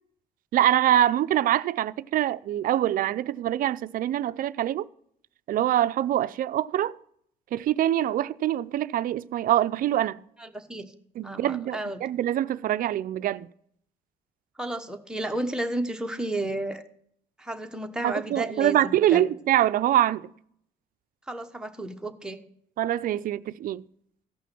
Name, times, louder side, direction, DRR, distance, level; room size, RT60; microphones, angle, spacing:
voice 1, 0.5-4.9 5.5-7.0 7.5-10.2 11.2-13.5 18.0-20.3 22.8-23.8, right 12 dB, 55° right, 0.5 m, -24 dB
voice 2, 10.4-10.9 11.2-12.0 14.6-16.8 17.4-19.2 21.3-22.4, right 1 dB, 5° right, 1.1 m, -32 dB
15.0 x 5.9 x 6.1 m
cardioid pair, 110°, 17 cm